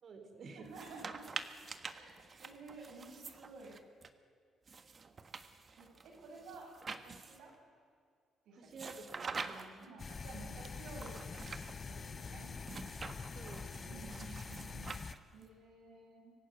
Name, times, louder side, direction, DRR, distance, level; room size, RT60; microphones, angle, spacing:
voice 1, 0.0-0.8 8.5-9.9 13.3-14.2, right 3 dB, 55° right, 6 dB, 3.9 m, -52 dB
sound 1, 0.6-4.1 4.7-7.5 8.7-9.9 10.6-11.7 12.6-15.5, right 4 dB, 40° right, 1.4 m, -47 dB
voice 2, 0.6-1.2 1.9-3.8 5.8-7.5 8.4-8.6 9.4-12.5 13.9-15.0 15.3-16.3, right 3 dB, 85° right, -1 dB, 7.7 m, -53 dB
sound 2, 10.0-15.1, left 5 dB, 40° left, 0.8 m, -45 dB
24.5 x 15.0 x 9.4 m, 2.2 s
cardioid pair, 90°, 0 cm